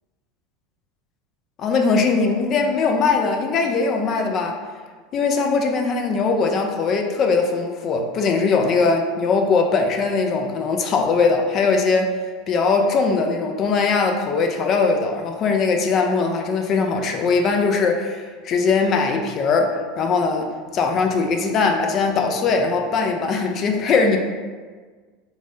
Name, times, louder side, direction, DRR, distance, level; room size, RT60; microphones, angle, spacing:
voice 1, 1.6-4.6 5.1-12.2 12.5-24.2, left 4 dB, 45° left, 3 dB, 0.3 m, -20 dB
3.1 x 2.2 x 2.6 m, 1.5 s
hypercardioid pair, 90°, 0 cm